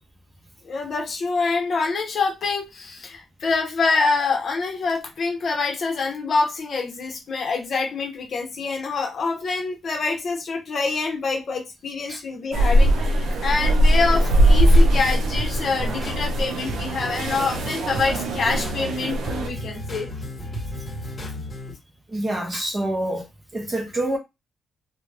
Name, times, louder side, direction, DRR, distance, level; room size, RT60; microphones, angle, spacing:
voice 1, 0.6-20.1, left 4 dB, 40° left, 0.8 m, -26 dB
sound 1, 12.5-19.5, equal, 65° right, 0.4 m, -20 dB
sound 2, 14.3-21.7, left 1 dB, 15° left, 1.3 m, -34 dB
voice 2, 22.1-23.2 23.5-24.2, right 1 dB, 20° right, 0.7 m, -26 dB
2.4 x 2.1 x 3.2 m
cardioid pair, 165°, 0 cm